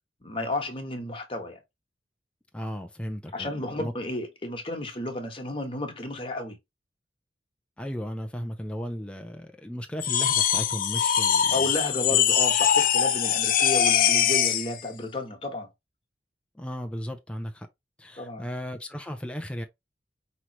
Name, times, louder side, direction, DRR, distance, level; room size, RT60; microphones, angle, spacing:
voice 1, 0.2-1.6 3.3-6.6 11.5-15.7 18.2-18.5, left 2 dB, 30° left, 1.4 m, -32 dB
voice 2, 2.5-3.9 7.8-11.7 16.5-17.7 18.0-19.6, equal, 5° left, 0.6 m, -35 dB
sound 1, 10.0-14.7, left 9 dB, 50° left, 0.6 m, -22 dB
5.6 x 3.2 x 3.0 m
head